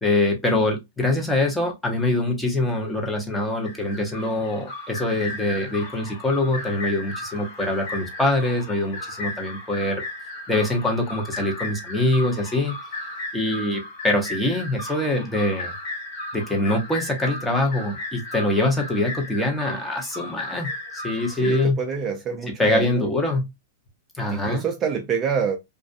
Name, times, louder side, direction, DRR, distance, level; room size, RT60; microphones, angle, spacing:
voice 1, 0.0-10.0 10.5-12.7 13.3-15.7 16.3-21.8 22.6-23.5 24.2-24.6, left 2 dB, 5° left, 0.8 m, -24 dB
sound 1, 3.6-21.6, left 2 dB, 45° left, 0.9 m, -35 dB
voice 2, 21.3-23.1 24.3-25.6, right 6 dB, 25° right, 0.4 m, -27 dB
2.4 x 2.2 x 2.5 m
hypercardioid pair, 135°, 0 cm